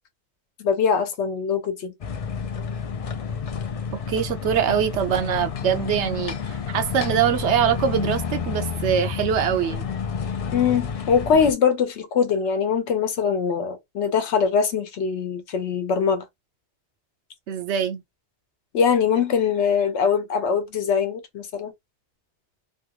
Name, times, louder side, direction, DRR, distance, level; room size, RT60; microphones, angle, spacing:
voice 1, 0.6-1.9 10.5-16.2 18.7-21.7, left 6 dB, 90° left, 1.0 m, -22 dB
sound 1, 2.0-11.5, left 6 dB, 55° left, 0.4 m, -30 dB
voice 2, 3.9-9.9 17.5-18.0, right 8 dB, 85° right, 0.9 m, -23 dB
3.3 x 2.3 x 2.8 m
omnidirectional pair, 1.1 m